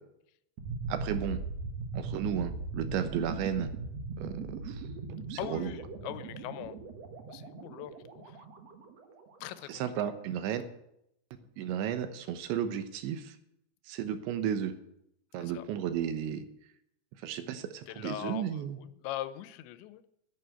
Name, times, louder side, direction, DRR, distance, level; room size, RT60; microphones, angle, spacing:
sound 1, 0.6-9.4, right 3 dB, 65° right, 1.6 m, -39 dB
voice 1, 0.9-1.4 1.9-3.7 4.2-4.8 5.1-5.7 9.7-10.6 11.6-13.4 13.9-14.7 15.3-16.5 17.2-18.8, right 9 dB, 90° right, 9 dB, 3.4 m, -34 dB
voice 2, 5.4-6.8 7.3-8.4 9.4-10.1 15.4-15.6 17.9-20.0, left 13 dB, 90° left, 13 dB, 3.1 m, -41 dB
9.9 x 9.9 x 9.3 m, 0.79 s
omnidirectional pair, 5.0 m